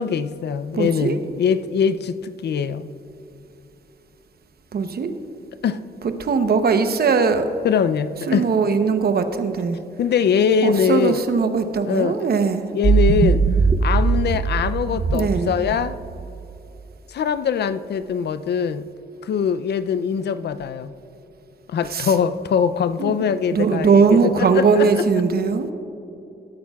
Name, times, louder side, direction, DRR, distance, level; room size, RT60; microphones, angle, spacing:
voice 1, 0.0-2.9 5.6-5.8 7.6-8.5 10.0-11.2 11.9-12.2 12.7-13.4 13.8-16.0 17.1-18.9 19.2-20.9 21.7-25.0, left 7 dB, 60° left, 0.5 m, -22 dB
voice 2, 0.7-1.2 4.7-5.1 6.2-7.5 8.3-9.8 10.6-12.7 15.1-15.5 21.9-22.1 23.0-23.1 23.5-25.7, right 5 dB, 55° right, 0.8 m, -19 dB
sound 1, 12.8-16.4, right 5 dB, 30° right, 0.6 m, -20 dB
19.5 x 8.7 x 2.3 m
cardioid pair, 85°, 19 cm